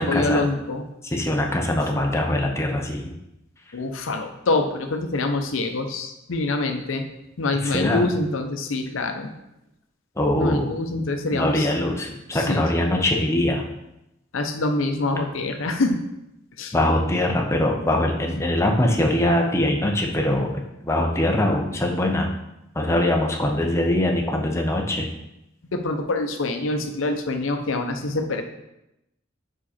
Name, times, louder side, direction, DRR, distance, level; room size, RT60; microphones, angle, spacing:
voice 1, 0.0-0.9 3.7-7.0 7.4-9.3 10.4-11.7 12.3-12.6 14.3-16.0 16.6-16.7 25.7-28.4, left 2 dB, 85° left, 5 dB, 0.7 m, -25 dB
voice 2, 1.0-3.1 7.6-8.1 10.2-11.0 11.3-13.6 16.7-22.3 22.8-25.1, left 1 dB, 15° left, 1 dB, 0.6 m, -22 dB
5.0 x 4.9 x 4.2 m, 0.88 s
head